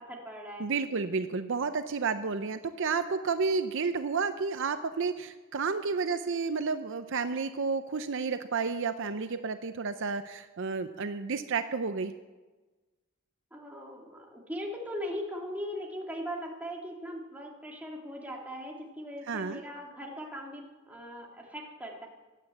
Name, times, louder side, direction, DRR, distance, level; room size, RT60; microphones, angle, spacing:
voice 1, 0.0-0.7 13.5-22.1, equal, 10° right, -1 dB, 2.5 m, -39 dB
voice 2, 0.6-12.1 19.2-19.6, right 5 dB, 60° right, 10 dB, 0.6 m, -31 dB
16.5 x 9.5 x 7.8 m, 1.2 s
head